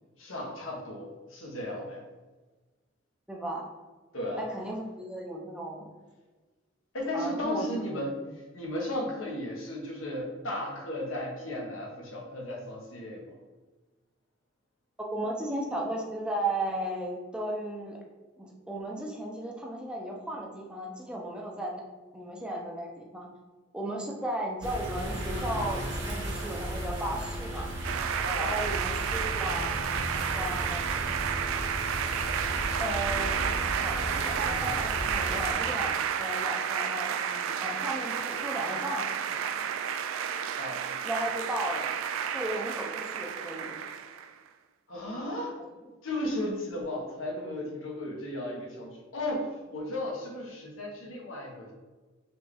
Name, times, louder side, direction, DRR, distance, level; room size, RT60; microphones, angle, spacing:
voice 1, 0.2-2.0 4.1-4.4 6.9-8.2 8.5-13.4 28.2-28.7 29.0-29.1 40.6-40.8 44.9-45.6 46.0-51.7, left 1 dB, 90° left, -1 dB, 1.1 m, -35 dB
voice 2, 3.3-3.6 4.4-5.9 7.1-8.0 15.1-18.0 18.4-21.8 22.1-23.3 23.7-27.7 28.4-30.0 30.3-31.1 32.8-39.1 41.0-42.0 42.3-43.7, right 1 dB, 5° right, -1 dB, 0.5 m, -35 dB
sound 1, 24.6-35.5, right 1 dB, 65° right, 1.1 m, -35 dB
sound 2, 27.8-44.3, right 8 dB, 90° right, 0.3 m, -31 dB
4.3 x 3.2 x 3.5 m, 1.3 s
head